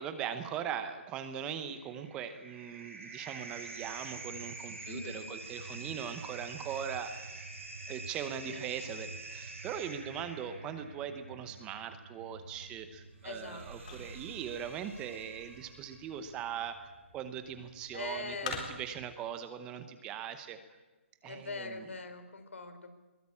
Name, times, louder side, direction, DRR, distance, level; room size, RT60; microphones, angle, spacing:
voice 1, 0.0-7.2 7.9-20.6 21.2-21.9, right 8 dB, 15° right, 10 dB, 0.9 m, -40 dB
sound 1, 1.7-16.2, right 3 dB, 85° right, 7.4 m, -46 dB
voice 2, 4.8-5.3 8.5-8.7 13.2-14.0 17.9-18.6 21.2-22.9, left 3 dB, 75° left, 8 dB, 4.4 m, -42 dB
sound 2, 12.3-19.1, left 5 dB, 30° left, 3.8 m, -48 dB
22.0 x 19.0 x 8.7 m, 1.2 s
hypercardioid pair, 165°, 7 cm